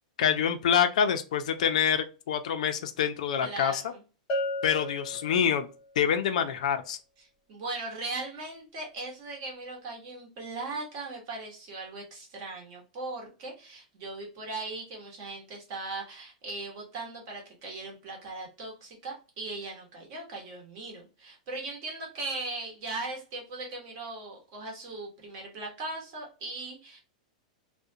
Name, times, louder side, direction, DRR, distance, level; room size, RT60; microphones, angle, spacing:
voice 1, 0.2-3.8 4.6-5.7 6.0-7.0, left 8 dB, 65° left, 0.4 m, -26 dB
voice 2, 3.4-4.0 7.5-27.0, right 3 dB, 35° right, 1.0 m, -39 dB
Bell, 4.3-5.9, left 1 dB, 25° left, 0.7 m, -34 dB
2.4 x 2.1 x 2.7 m
supercardioid pair, 170°, 4 cm